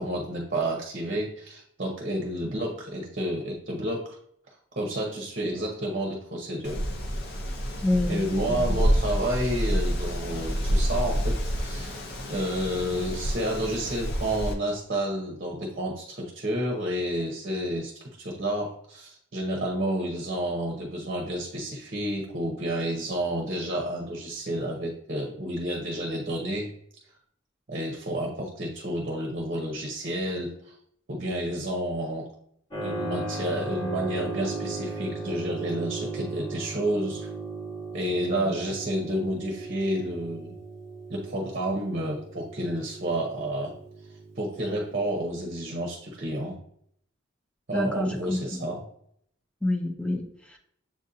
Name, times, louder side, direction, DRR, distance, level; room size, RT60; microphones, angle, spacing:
voice 1, 0.0-4.2 4.5-6.8 8.1-11.9 12.3-26.7 27.7-30.8 31.1-32.3 32.8-37.3 37.9-40.5 41.1-43.7 44.4-46.6 47.7-48.8, right 1 dB, 40° right, 0 dB, 0.8 m, -30 dB
Wind, 6.6-14.5, equal, 50° left, 0.6 m, -28 dB
voice 2, 7.8-8.6 38.3-38.5 47.7-48.7 49.6-50.6, left 1 dB, 5° left, 3 dB, 0.5 m, -28 dB
Keyboard (musical), 32.7-45.1, right 3 dB, 25° left, 1.3 m, -37 dB
7.3 x 2.6 x 2.6 m, 0.67 s
head